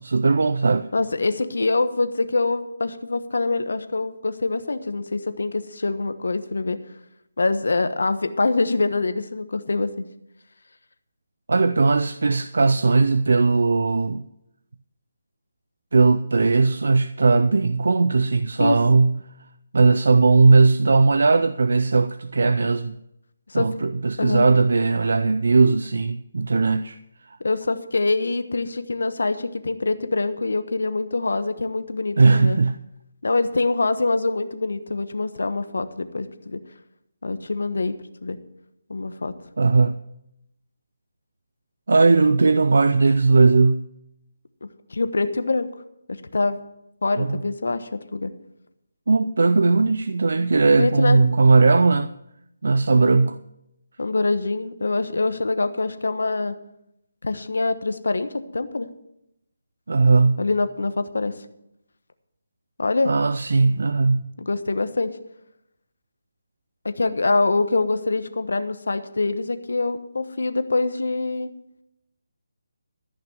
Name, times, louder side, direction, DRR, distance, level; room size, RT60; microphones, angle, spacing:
voice 1, 0.0-0.9 11.5-14.2 15.9-19.2 19.7-23.0 23.5-27.0 32.2-32.8 39.6-40.0 41.9-43.9 47.2-47.4 49.1-52.1 52.6-53.4 59.9-60.5 63.1-64.3, right 3 dB, 70° right, 0.5 m, -18 dB
voice 2, 0.9-6.8 7.4-10.0 18.6-18.8 23.5-23.7 24.2-24.4 27.4-32.6 33.2-36.6 37.2-38.0 38.2-38.4 38.9-39.3 44.6-45.7 46.1-46.6 47.0-48.3 50.8-51.2 52.9-53.2 54.0-56.6 57.2-58.9 60.4-61.4 62.8-63.1 64.4-65.1 66.8-71.5, left 3 dB, 85° left, 1.1 m, -24 dB
14.0 x 6.0 x 8.1 m
hypercardioid pair, 170°, 0 cm